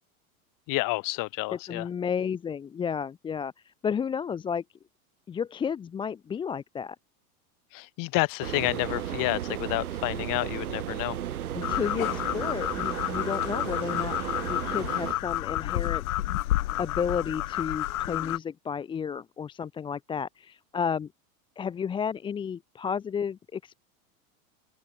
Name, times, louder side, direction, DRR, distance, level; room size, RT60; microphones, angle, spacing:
voice 1, 0.7-1.9 7.7-11.2, left 24 dB, 50° left, 2.9 m, -29 dB
voice 2, 1.7-4.6 5.3-7.0 11.5-14.2 14.5-16.0 16.8-21.1 21.6-23.8, left 7 dB, 10° left, 0.4 m, -32 dB
sound 1, 8.4-15.1, right 11 dB, 85° right, 1.8 m, -34 dB
sound 2, 11.6-18.4, left 15 dB, 75° left, 2.3 m, -30 dB
open air
hypercardioid pair, 105°, 43 cm